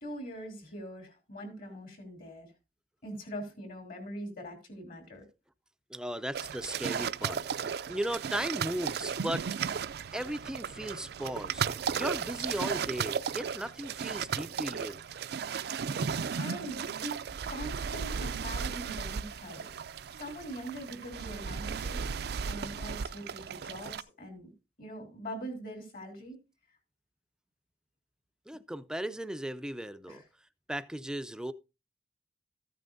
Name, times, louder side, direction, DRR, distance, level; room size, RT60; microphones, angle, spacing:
voice 1, 0.0-2.5 3.0-5.2 16.3-17.2 17.5-19.7 20.2-22.1 22.5-24.5 24.8-26.4 30.1-30.2, equal, 55° left, 3.3 m, -42 dB
voice 2, 5.9-7.4 7.9-9.5 10.1-15.0 28.5-30.2 30.7-31.5, right 1 dB, 5° right, 0.4 m, -36 dB
sound 1, 6.3-24.0, right 6 dB, 65° right, 0.4 m, -35 dB
14.0 x 9.1 x 2.6 m
head